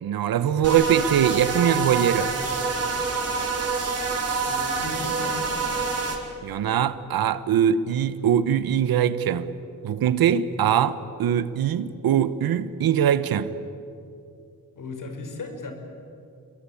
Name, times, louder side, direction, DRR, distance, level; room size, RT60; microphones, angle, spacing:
voice 1, 0.0-2.3 6.4-9.5 9.8-13.5, right 9 dB, 80° right, 1.2 m, -22 dB
sound 1, 0.6-6.2, right 4 dB, 45° right, 4.9 m, -27 dB
voice 2, 4.4-5.5 14.8-15.7, left 3 dB, 60° left, 5.3 m, -36 dB
28.0 x 23.0 x 8.6 m
cardioid pair, 80°, 35 cm